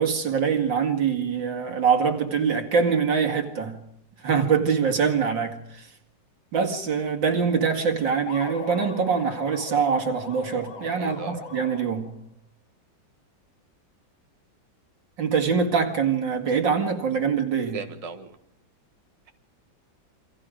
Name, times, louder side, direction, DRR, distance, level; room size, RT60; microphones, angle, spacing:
voice 1, 0.0-3.8 4.2-5.9 6.5-12.1 15.2-17.8, right 6 dB, 70° right, 2.8 m, -24 dB
sound 1, 8.3-12.1, left 3 dB, 80° left, 3.1 m, -39 dB
voice 2, 11.0-11.4 17.7-18.4, right 5 dB, 20° right, 1.3 m, -37 dB
28.0 x 25.0 x 5.1 m
omnidirectional pair, 2.1 m